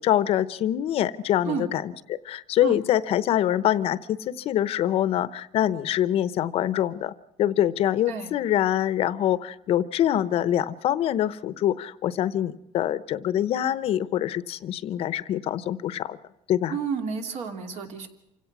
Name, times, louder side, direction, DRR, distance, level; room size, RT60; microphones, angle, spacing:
voice 1, 0.0-7.1 7.4-16.2 16.5-16.8, left 11 dB, 50° left, 16 dB, 0.8 m, -25 dB
voice 2, 16.7-18.1, right 6 dB, 60° right, 5 dB, 2.9 m, -31 dB
27.5 x 17.0 x 6.1 m, 0.84 s
cardioid pair, 150°, 13 cm